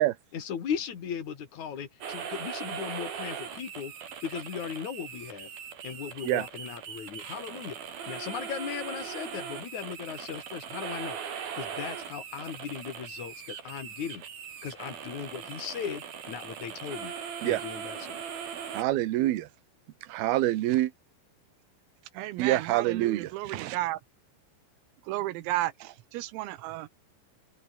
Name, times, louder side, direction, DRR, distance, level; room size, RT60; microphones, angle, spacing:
voice 1, 0.3-3.9 4.2-5.5 5.8-7.8 8.1-11.2 11.5-14.2 14.6-17.1 17.4-18.2, left 7 dB, 45° left, 3.1 m, -37 dB
sound 1, 2.0-18.8, right 7 dB, 50° right, 4.7 m, -40 dB
voice 2, 18.7-19.5 20.1-20.9 22.4-23.8, right 15 dB, 70° right, 2.4 m, -26 dB
voice 3, 22.2-24.0 25.1-26.9, right 16 dB, 90° right, 4.0 m, -33 dB
omnidirectional pair, 6.0 m